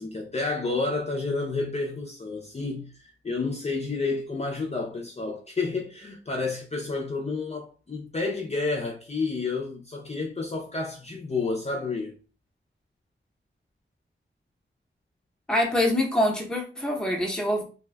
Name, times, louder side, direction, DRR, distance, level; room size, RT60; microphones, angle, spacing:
voice 1, 0.0-12.1, left 3 dB, 30° left, 0.5 m, -30 dB
voice 2, 15.5-17.6, left 1 dB, 5° left, 0.8 m, -25 dB
2.6 x 2.2 x 3.2 m
wide cardioid pair, 95°, 21 cm